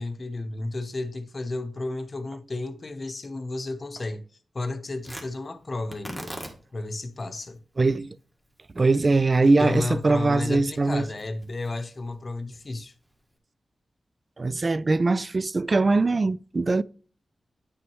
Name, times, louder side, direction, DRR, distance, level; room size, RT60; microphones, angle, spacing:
voice 1, 0.0-4.2 4.5-6.3 6.7-7.6 9.6-12.9, left 2 dB, 45° left, 0.8 m, -32 dB
Tearing, 5.0-13.4, right 1 dB, 15° right, 1.6 m, -45 dB
voice 2, 7.8-8.2 8.8-11.1 14.4-16.8, right 3 dB, 40° right, 0.3 m, -22 dB
9.5 x 6.1 x 3.1 m
wide cardioid pair, 80°, 0 cm